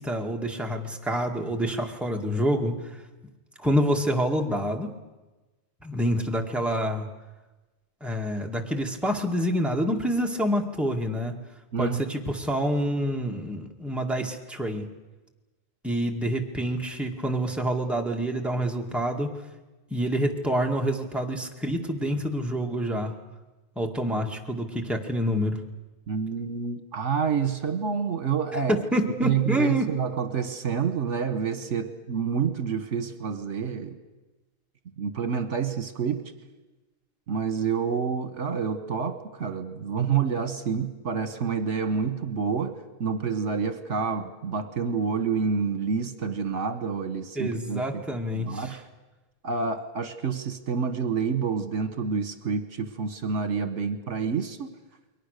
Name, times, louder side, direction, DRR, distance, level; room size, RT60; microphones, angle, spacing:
voice 1, 0.0-2.7 3.6-4.9 5.8-7.1 8.0-11.3 11.8-14.9 15.8-19.3 19.9-23.1 23.8-25.6 28.9-29.9 47.4-48.8, equal, ahead, 1 dB, 2.0 m, -27 dB
voice 2, 11.7-12.0 26.1-28.8 29.2-34.0 35.0-36.2 37.3-48.8 49.4-54.7, right 6 dB, 65° right, 9 dB, 1.6 m, -28 dB
29.5 x 22.5 x 6.7 m, 1.1 s
omnidirectional pair, 1.3 m